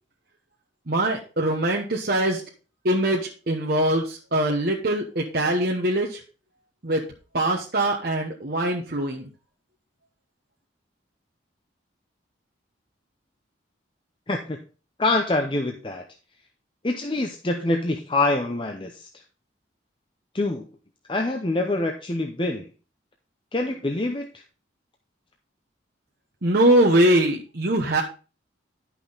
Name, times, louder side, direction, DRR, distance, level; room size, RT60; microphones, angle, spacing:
voice 1, 0.9-2.4 2.8-3.2 3.5-6.2 6.8-7.0 7.3-9.3 26.4-28.0, right 1 dB, 55° right, 0 dB, 1.0 m, -22 dB
voice 2, 14.3-14.6 15.0-16.0 16.8-19.1 20.3-20.7 21.1-22.7 23.5-24.3, left 2 dB, 25° left, 3 dB, 0.7 m, -25 dB
10.5 x 5.8 x 3.9 m, 0.35 s
head